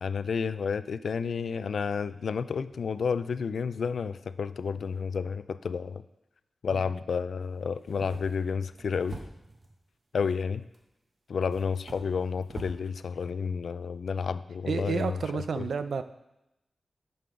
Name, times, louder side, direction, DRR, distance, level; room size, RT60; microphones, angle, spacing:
voice 1, 0.0-6.0 6.6-9.2 10.1-10.6 11.3-15.7, left 6 dB, 90° left, 14 dB, 0.3 m, -31 dB
sound 1, 7.8-9.7 10.7-10.8 11.5-12.8, right 3 dB, 50° right, 1.2 m, -45 dB
voice 2, 14.7-16.0, right 5 dB, 85° right, 11 dB, 0.4 m, -30 dB
11.0 x 5.5 x 3.8 m, 0.89 s
wide cardioid pair, 135°, 0 cm